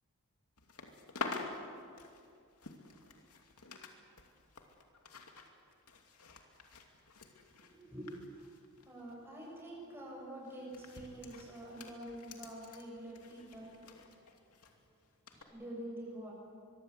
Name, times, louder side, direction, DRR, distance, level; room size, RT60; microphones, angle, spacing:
sound 1, 0.6-3.9 4.2-9.1 9.4-9.7 10.5-14.7 15.3-15.4, left 3 dB, 85° left, 2.7 m, -48 dB
voice 1, 7.6-8.5 8.9-13.8 14.0-14.2 15.3-16.3, right 1 dB, 10° right, -4 dB, 7.5 m, -47 dB
23.5 x 23.5 x 8.3 m, 2.3 s
head